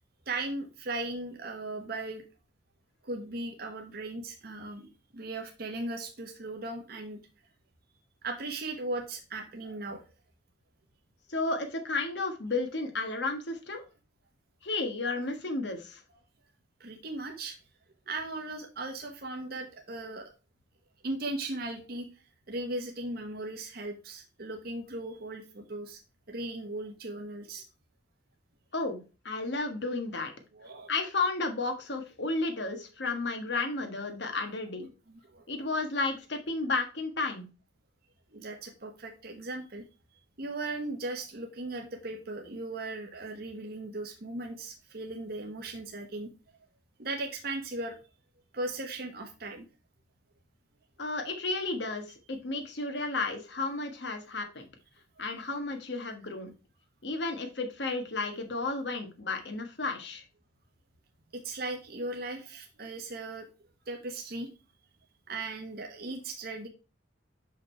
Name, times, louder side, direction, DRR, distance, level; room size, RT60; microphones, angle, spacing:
voice 1, 0.3-2.2 3.0-7.2 8.2-10.0 16.8-17.6 18.1-20.3 21.0-22.1 22.5-26.0 26.3-27.6 30.5-30.9 35.1-35.4 38.3-39.9 40.4-46.3 47.0-48.0 48.5-49.7 61.3-63.5 63.9-64.5 65.3-66.7, right 2 dB, 55° right, 3 dB, 1.1 m, -37 dB
voice 2, 11.3-13.8 14.6-16.0 28.7-29.0 29.2-30.3 30.9-34.9 35.5-37.4 51.0-54.7 55.2-56.5 57.0-60.2, left 3 dB, 70° left, 5 dB, 1.4 m, -32 dB
6.2 x 5.1 x 4.4 m, 0.31 s
head